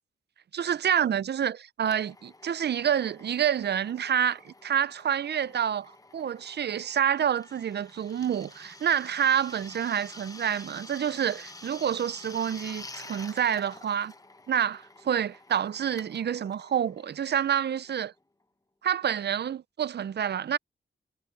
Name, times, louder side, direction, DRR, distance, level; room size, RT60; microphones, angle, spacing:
voice 1, 0.5-14.1 14.5-18.1 18.8-20.6, right 9 dB, 55° right, 0.4 m, -28 dB
Drill, 1.9-18.2, left 2 dB, 15° left, 0.9 m, -49 dB
wide cardioid pair, 125°, 21 cm